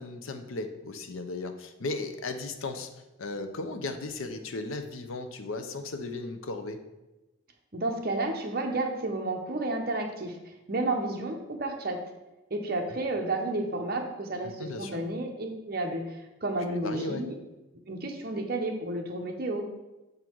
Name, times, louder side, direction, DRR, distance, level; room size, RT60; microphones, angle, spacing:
voice 1, 0.0-2.9 3.2-6.8 14.6-15.0 16.7-17.2, left 3 dB, 85° left, 7 dB, 0.7 m, -36 dB
voice 2, 7.7-12.0 12.5-17.3 17.9-19.7, right 2 dB, 50° right, 3 dB, 0.8 m, -31 dB
7.1 x 3.9 x 4.5 m, 1.0 s
head